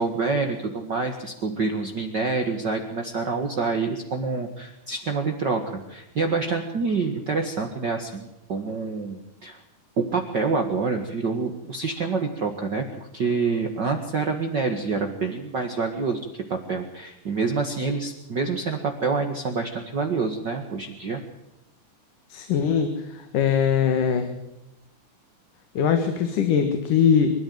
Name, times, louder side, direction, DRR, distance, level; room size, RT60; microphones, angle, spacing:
voice 1, 0.0-9.6 10.0-16.2 16.5-21.2, right 4 dB, 40° right, 4 dB, 2.0 m, -27 dB
voice 2, 22.3-24.3 25.7-27.3, left 7 dB, 90° left, 7 dB, 3.3 m, -21 dB
25.5 x 13.5 x 7.9 m, 0.91 s
omnidirectional pair, 3.6 m